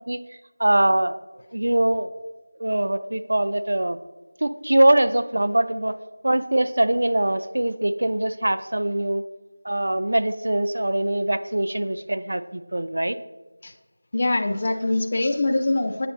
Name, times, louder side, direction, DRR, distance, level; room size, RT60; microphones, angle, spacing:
voice 1, 0.6-1.2 1.5-2.1 2.6-4.0 4.4-6.0 6.2-9.2 9.6-13.2, right 1 dB, 60° right, 11 dB, 0.4 m, -22 dB
voice 2, 14.1-16.1, left 2 dB, 30° left, 4 dB, 0.3 m, -23 dB
8.4 x 5.6 x 2.8 m, 1.1 s
figure-of-eight pair, 175°, 0 cm